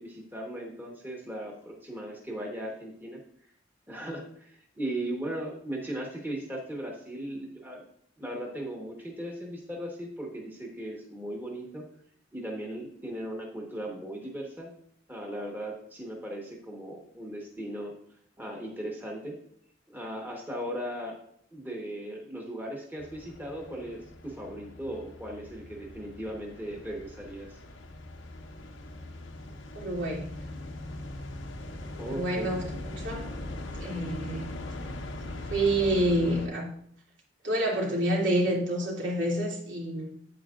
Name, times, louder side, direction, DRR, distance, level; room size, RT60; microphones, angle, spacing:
voice 1, 0.0-3.2 3.9-7.8 8.2-11.8 12.3-14.7 15.1-17.9 18.4-19.4 19.9-21.2 21.5-27.6 32.0-32.5, right 1 dB, 10° right, -1 dB, 1.3 m, -37 dB
sound 1, 23.0-36.5, left 1 dB, 80° left, 1.0 m, -41 dB
voice 2, 29.7-30.3 32.1-33.3 33.8-34.6 35.4-36.7 37.4-40.1, right 1 dB, 75° right, -3 dB, 2.8 m, -28 dB
9.3 x 8.1 x 2.5 m, 0.66 s
head